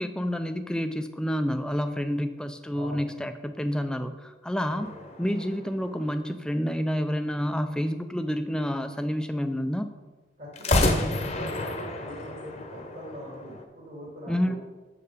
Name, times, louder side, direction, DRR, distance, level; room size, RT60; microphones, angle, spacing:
voice 1, 0.0-9.9 14.3-14.6, equal, 5° left, 8 dB, 0.4 m, -29 dB
sound 1, 4.7-6.5 10.5-13.6, left 1 dB, 35° left, 0.9 m, -29 dB
voice 2, 10.4-14.6, equal, 55° right, -6 dB, 2.8 m, -42 dB
6.8 x 6.8 x 5.0 m, 1.2 s
head